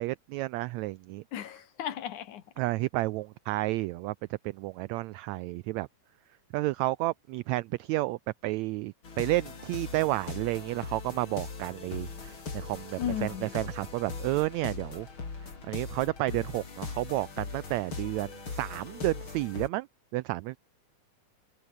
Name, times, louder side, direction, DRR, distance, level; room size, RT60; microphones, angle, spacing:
voice 1, 0.0-1.2 2.6-5.9 6.5-15.1 15.7-19.9 20.1-20.6, right 19 dB, 85° right, 1.6 m, -31 dB
voice 2, 1.3-2.4 13.0-13.5, left 10 dB, 70° left, 3.0 m, -35 dB
sound 1, 9.0-19.7, left 4 dB, 40° left, 4.5 m, -40 dB
omnidirectional pair, 3.7 m